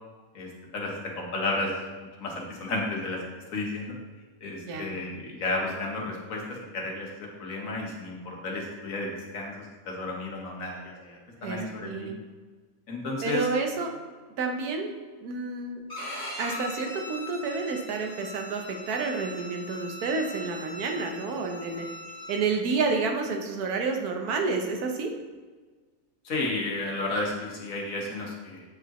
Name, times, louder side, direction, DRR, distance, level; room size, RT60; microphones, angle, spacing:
voice 1, 0.3-1.7 2.2-3.2 3.5-3.9 4.4-6.4 6.7-12.1 12.9-13.5 26.2-28.6, left 2 dB, 65° left, -1 dB, 1.6 m, -32 dB
voice 2, 11.4-12.2 13.2-13.9 14.4-15.8 16.4-21.9 22.3-25.1, right 4 dB, 85° right, 4 dB, 1.3 m, -30 dB
Bowed string instrument, 15.9-22.4, left 1 dB, 30° left, 1.3 m, -40 dB
7.9 x 4.9 x 2.9 m, 1.4 s
omnidirectional pair, 1.6 m